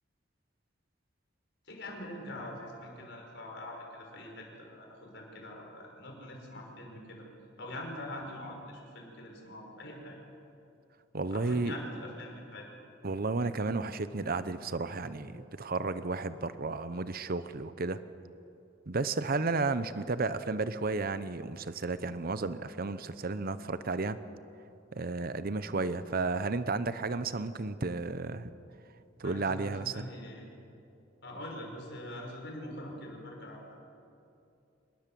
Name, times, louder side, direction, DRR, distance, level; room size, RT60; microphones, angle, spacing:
voice 1, 1.6-7.3 7.6-10.2 11.3-12.7 29.2-30.5 31.2-33.7, left 1 dB, 60° left, 1 dB, 5.7 m, -44 dB
voice 2, 11.1-11.8 13.0-18.0 18.9-24.2 24.9-28.5 29.2-30.1, right 3 dB, 50° right, 13 dB, 0.8 m, -33 dB
26.5 x 20.5 x 7.7 m, 2.7 s
head